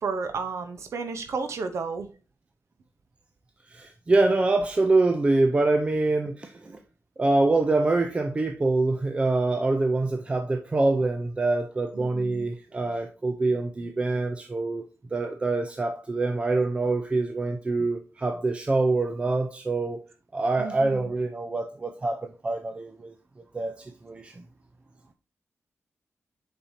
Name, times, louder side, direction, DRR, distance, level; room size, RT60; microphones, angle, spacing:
voice 1, 0.0-2.1 11.9-12.5 20.6-21.1, right 4 dB, 75° right, 0.8 m, -32 dB
voice 2, 3.7-6.8 7.2-14.9 15.1-20.0 20.3-23.1 23.5-24.4, right 2 dB, 25° right, 0.5 m, -25 dB
7.1 x 5.4 x 2.7 m
wide cardioid pair, 165°, 5 cm